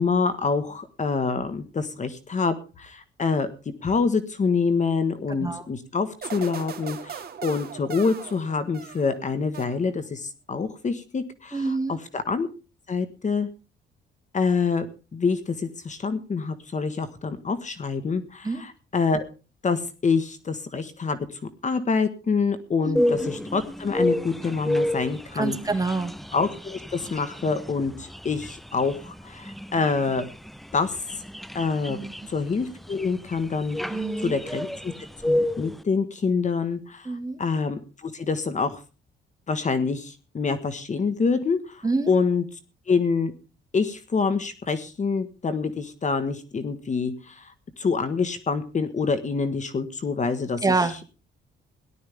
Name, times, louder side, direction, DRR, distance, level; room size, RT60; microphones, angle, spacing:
voice 1, 0.0-3.5 3.8-12.5 12.9-13.5 14.3-14.9 15.1-19.2 19.6-25.6 26.3-30.3 30.7-31.0 31.5-34.0 34.2-34.9 35.2-38.8 39.5-42.4 42.9-43.3 43.7-50.6, left 4 dB, 40° left, 12 dB, 1.5 m, -26 dB
sound 1, 6.2-9.2 9.5-10.2, right 7 dB, 50° right, 2.3 m, -39 dB
voice 2, 11.5-12.0 18.4-18.6 22.8-23.3 25.3-26.1 31.9-32.1 33.9-34.4 37.1-37.4 41.8-42.1 50.6-51.0, right 3 dB, 15° right, 6 dB, 2.0 m, -27 dB
sound 2, 23.0-35.8, left 1 dB, ahead, 0.6 m, -30 dB
18.0 x 11.5 x 3.5 m, 0.33 s
cardioid pair, 90°, 20 cm